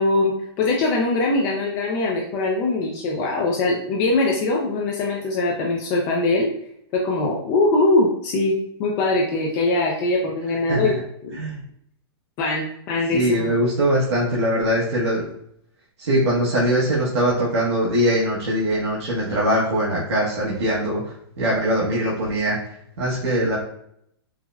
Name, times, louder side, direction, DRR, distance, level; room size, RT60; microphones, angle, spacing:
voice 1, 0.0-6.5 6.9-10.9 11.2-11.4 12.4-13.6, left 2 dB, 20° left, -1 dB, 0.3 m, -22 dB
voice 2, 13.1-15.2 16.0-21.0 21.4-22.6 23.0-23.6, equal, 85° right, -7 dB, 1.1 m, -21 dB
4.5 x 2.1 x 2.3 m, 0.70 s
hypercardioid pair, 165°, 14 cm